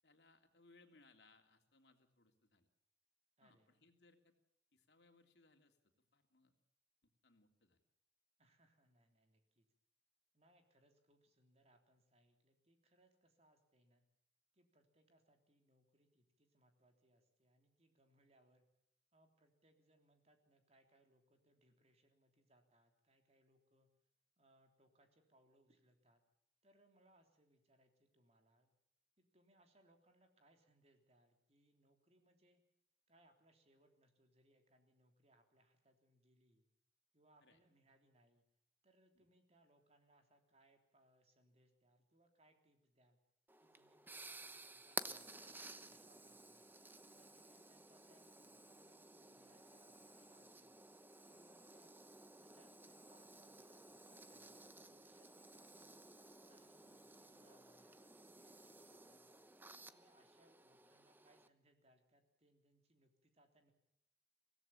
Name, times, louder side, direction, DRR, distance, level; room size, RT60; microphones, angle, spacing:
voice 1, 0.0-2.7 3.4-4.3 4.7-6.5 7.0-7.8 37.4-37.6 39.1-39.3, left 3 dB, 75° left, 4 dB, 3.1 m, -70 dB
voice 2, 3.4-3.8 8.4-9.7 10.3-14.0 14.5-18.6 19.1-23.9 24.4-26.2 26.6-28.7 29.2-32.6 33.1-36.7 37.1-38.5 38.8-43.2 43.6-46.6 47.1-50.7 51.3-51.9 52.2-56.1 56.4-59.4 59.8-63.7, right 1 dB, 35° right, 5 dB, 3.4 m, -74 dB
sound 1, 43.5-61.5, right 2 dB, 10° right, 0.9 m, -54 dB
24.5 x 17.0 x 7.1 m, 0.76 s
head